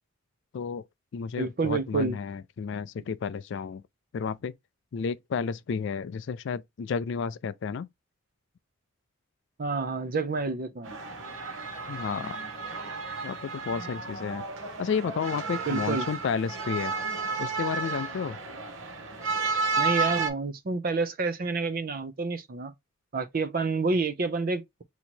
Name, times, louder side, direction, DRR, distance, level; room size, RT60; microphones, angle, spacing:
voice 1, 0.5-0.9 1.1-3.8 4.1-4.5 4.9-7.9 11.9-12.4 13.2-14.5 14.8-16.9 17.4-18.4, left 6 dB, 55° left, 0.3 m, -32 dB
voice 2, 1.4-2.2 9.6-11.0 15.7-16.1 19.8-22.7 23.1-24.8, right 4 dB, 40° right, 0.5 m, -29 dB
sound 1, 10.8-20.3, right 4 dB, 65° right, 0.8 m, -32 dB
2.9 x 2.8 x 4.3 m
head